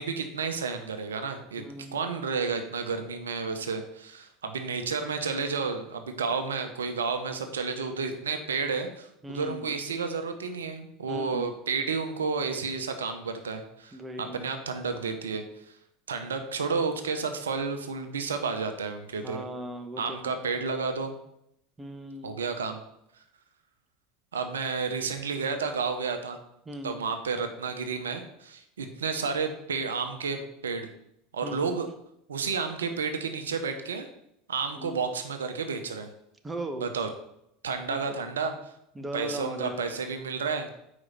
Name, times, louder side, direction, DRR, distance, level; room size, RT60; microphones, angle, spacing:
voice 1, 0.0-1.6 1.9-15.7 16.1-19.4 20.0-21.2 22.2-22.8 24.3-26.4 26.8-30.9 31.3-31.9 32.3-34.1 34.5-36.1 36.8-37.1 37.6-38.7 39.1-40.7, right 5 dB, 80° right, 7 dB, 0.7 m, -31 dB
voice 2, 1.6-2.0 9.2-9.7 11.1-11.5 13.9-14.4 19.2-20.3 21.8-22.4 26.7-27.0 31.4-31.7 34.8-35.0 36.4-36.9 37.9-38.1 38.9-39.9, right 1 dB, 15° right, 6 dB, 0.9 m, -38 dB
4.9 x 4.8 x 5.6 m, 0.77 s
hypercardioid pair, 80°, 0 cm